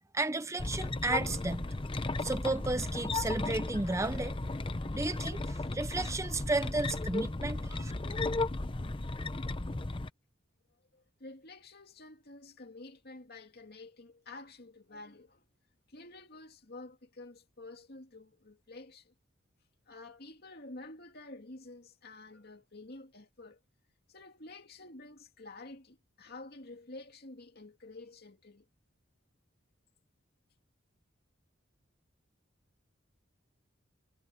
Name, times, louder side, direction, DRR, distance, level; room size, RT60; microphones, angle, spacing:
voice 1, 0.1-1.7 2.2-4.4 4.9-7.9, right 2 dB, 15° right, 0.6 m, -33 dB
sound 1, 0.6-10.1, left 2 dB, 25° left, 0.8 m, -35 dB
voice 2, 10.9-15.5 15.9-19.1 19.9-23.6 24.1-28.7, left 2 dB, 55° left, 2.5 m, -50 dB
head